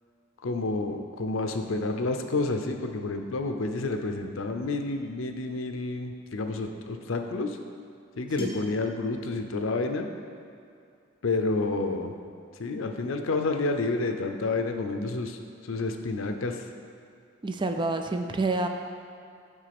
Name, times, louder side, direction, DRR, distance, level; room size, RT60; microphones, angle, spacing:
voice 1, 0.4-7.6 8.2-10.1 11.2-12.1 12.6-15.4 15.6-16.7, left 3 dB, 80° left, 6 dB, 0.6 m, -29 dB
sound 1, 4.9-5.2 6.8-6.9 8.4-8.8, left 2 dB, 25° left, 1.1 m, -48 dB
voice 2, 17.4-18.7, right 3 dB, 25° right, 5 dB, 0.4 m, -28 dB
8.0 x 3.8 x 5.9 m, 2.5 s
head